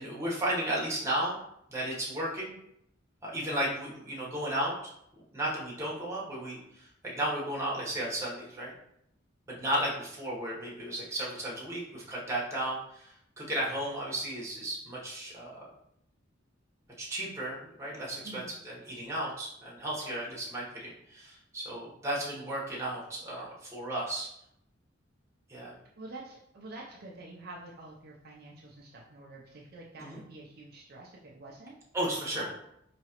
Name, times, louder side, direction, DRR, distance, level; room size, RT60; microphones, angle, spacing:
voice 1, 0.0-1.4 1.7-2.6 3.2-4.7 5.3-8.7 9.5-15.7 17.0-24.3 25.5-25.8 30.0-30.2 31.9-32.5, right 1 dB, 15° right, -5 dB, 1.1 m, -34 dB
voice 2, 26.0-31.8 32.4-32.5, right 2 dB, 50° right, -2 dB, 0.5 m, -47 dB
4.7 x 3.0 x 2.9 m, 0.77 s
head